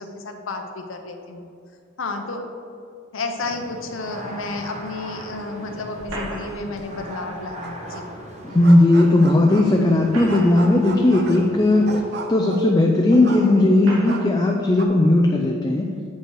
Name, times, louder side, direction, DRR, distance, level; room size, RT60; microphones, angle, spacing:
voice 1, 0.0-1.5 2.0-2.4 3.1-8.0, left 3 dB, 70° left, 5 dB, 0.7 m, -31 dB
sound 1, 3.4-12.0, equal, 35° right, 1.2 m, -39 dB
sound 2, 6.0-6.8 8.5-8.6 9.8-10.8 11.6-11.7 12.7-12.8 13.8-14.3, right 1 dB, 90° right, 1.8 m, -35 dB
sound 3, 7.6-8.2 8.5-9.9 10.3-13.8 14.1-14.9, right 3 dB, 55° right, 0.7 m, -35 dB
voice 2, 8.5-11.9 12.3-15.9, left 2 dB, 20° left, 1 dB, 0.4 m, -16 dB
7.9 x 5.6 x 4.6 m, 2.4 s
head